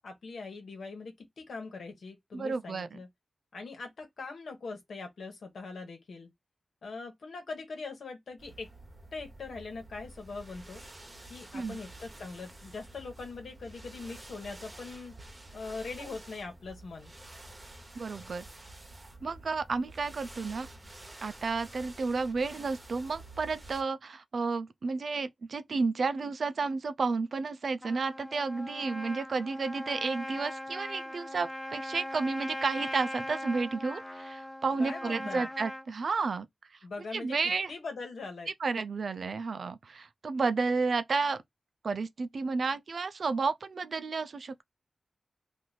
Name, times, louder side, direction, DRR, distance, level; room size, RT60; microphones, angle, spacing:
voice 1, 0.0-3.1 3.5-6.3 6.8-8.7 9.1-10.8 11.3-15.1 15.5-17.1 34.8-35.5 36.8-38.5, left 4 dB, 85° left, 1.2 m, -42 dB
voice 2, 2.3-3.0 11.5-11.8 17.9-18.4 19.2-20.7 21.2-36.5 37.1-37.7 38.6-41.4 41.8-44.6, right 4 dB, 70° right, 0.4 m, -32 dB
sound 1, 8.4-23.8, right 2 dB, 30° right, 1.0 m, -50 dB
Trumpet, 27.8-35.9, left 1 dB, 20° left, 0.7 m, -40 dB
3.0 x 2.6 x 3.9 m
cardioid pair, 60°, 0 cm